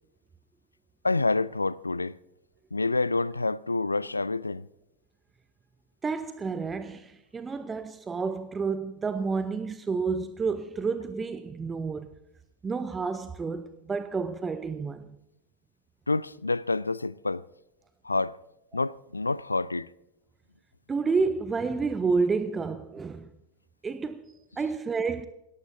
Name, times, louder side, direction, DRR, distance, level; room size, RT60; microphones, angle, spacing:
voice 1, 1.0-2.2 2.7-4.7 16.1-17.5 18.0-18.4 18.7-19.9, left 3 dB, 80° left, 0.4 m, -28 dB
voice 2, 6.0-12.1 12.6-15.2 20.9-23.3 23.8-25.3, right 4 dB, 15° right, 0.7 m, -30 dB
20.5 x 17.5 x 2.7 m
figure-of-eight pair, 90°, 0 cm